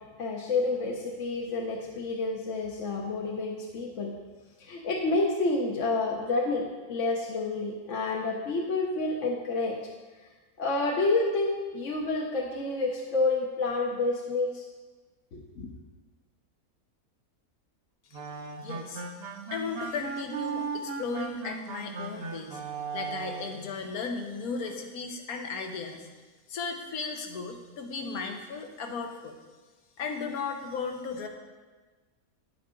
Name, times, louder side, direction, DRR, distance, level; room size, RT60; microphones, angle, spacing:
voice 1, 0.2-4.1 4.6-9.8 10.6-14.6 15.3-15.7, left 3 dB, 55° left, -1 dB, 1.2 m, -29 dB
sound 1, 18.1-23.7, right 5 dB, 50° right, 0.9 m, -37 dB
voice 2, 18.6-19.1 19.5-22.6 22.9-26.1 26.5-29.3 30.0-31.3, left 4 dB, 75° left, 4 dB, 1.4 m, -35 dB
10.0 x 8.6 x 3.8 m, 1.3 s
omnidirectional pair, 1.6 m